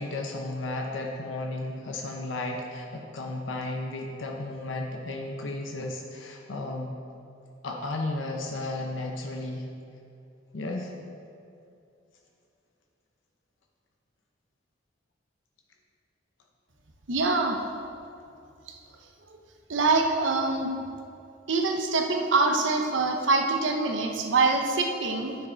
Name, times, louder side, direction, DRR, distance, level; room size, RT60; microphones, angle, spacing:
voice 1, 0.0-6.9 7.6-9.6 10.5-10.9, left 2 dB, 85° left, 1 dB, 0.8 m, -34 dB
voice 2, 17.1-17.6 18.7-18.8 19.7-20.7 21.5-25.4, right 3 dB, 75° right, 3 dB, 0.8 m, -24 dB
9.3 x 6.5 x 3.9 m, 2.6 s
head